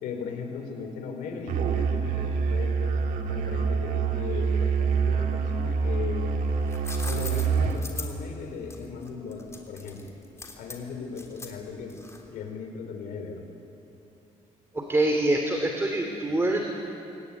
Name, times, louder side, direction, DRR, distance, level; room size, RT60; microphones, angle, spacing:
voice 1, 0.0-2.9 3.3-6.3 7.0-10.1 10.6-12.0 12.3-13.4, left 5 dB, 90° left, 4 dB, 3.6 m, -37 dB
Musical instrument, 1.5-7.9, right 5 dB, 80° right, 1.8 m, -26 dB
sound 1, 6.4-12.4, left 3 dB, 20° left, 3.3 m, -41 dB
voice 2, 14.7-16.6, right 1 dB, 20° right, 3 dB, 2.7 m, -25 dB
23.0 x 17.5 x 9.7 m, 2.8 s
cardioid pair, 90°, 14 cm